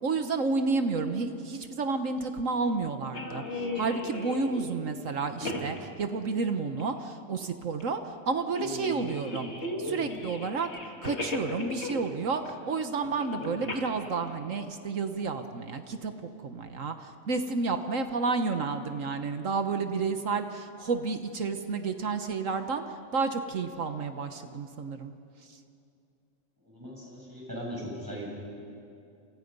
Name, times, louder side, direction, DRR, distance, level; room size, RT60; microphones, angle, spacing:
voice 1, 0.0-9.5 9.8-10.7 11.0-16.1 16.4-25.1 25.5-25.6, right 4 dB, 70° right, 7 dB, 1.5 m, -31 dB
sound 1, 3.1-4.8 5.3-5.8 6.8-6.9 7.4-7.5 7.8-7.9 8.6-12.1 12.4-12.8 13.0-13.8, left 2 dB, 50° left, 2.6 m, -36 dB
voice 2, 26.7-28.3, equal, 15° right, -4 dB, 7.9 m, -39 dB
29.5 x 28.5 x 5.4 m, 2.5 s
omnidirectional pair, 1.4 m